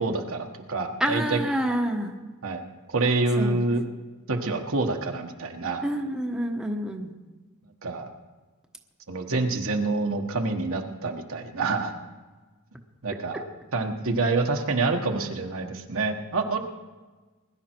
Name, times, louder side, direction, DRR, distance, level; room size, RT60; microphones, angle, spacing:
voice 1, 0.0-1.4 2.4-2.6 2.9-3.8 4.3-5.8 7.8-8.1 9.1-11.9 13.0-13.4 13.7-16.6, right 3 dB, 65° right, 3 dB, 1.4 m, -27 dB
voice 2, 1.0-2.1 3.4-3.6 5.8-7.1, equal, 5° right, 1 dB, 1.1 m, -27 dB
21.0 x 11.5 x 4.5 m, 1.3 s
head